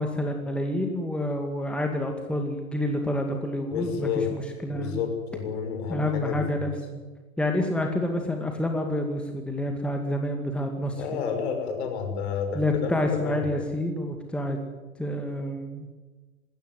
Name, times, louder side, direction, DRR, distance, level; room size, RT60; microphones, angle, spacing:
voice 1, 0.0-5.0 5.9-7.0 7.4-11.2 12.5-14.6 15.0-15.9, left 1 dB, 5° left, 3 dB, 2.2 m, -28 dB
voice 2, 3.7-4.3 4.7-6.4 10.9-13.5, left 6 dB, 50° left, 5 dB, 5.9 m, -30 dB
20.5 x 17.0 x 9.5 m, 1.3 s
figure-of-eight pair, 100°, 41 cm